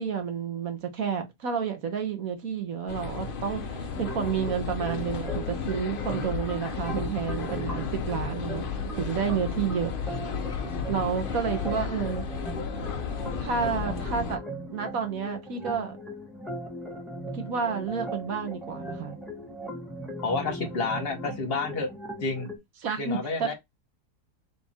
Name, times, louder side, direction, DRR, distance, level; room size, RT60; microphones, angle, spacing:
voice 1, 0.0-9.9 10.9-12.3 13.4-14.4 14.7-16.0 17.3-19.2 22.8-23.5, right 6 dB, 60° right, 1.3 m, -30 dB
sound 1, 2.9-14.4, left 5 dB, 60° left, 0.5 m, -33 dB
sound 2, 3.9-22.6, equal, ahead, 1.2 m, -39 dB
voice 2, 20.2-21.9 22.2-22.5 23.0-23.5, left 3 dB, 40° left, 1.2 m, -29 dB
3.6 x 2.9 x 4.2 m
omnidirectional pair, 1.7 m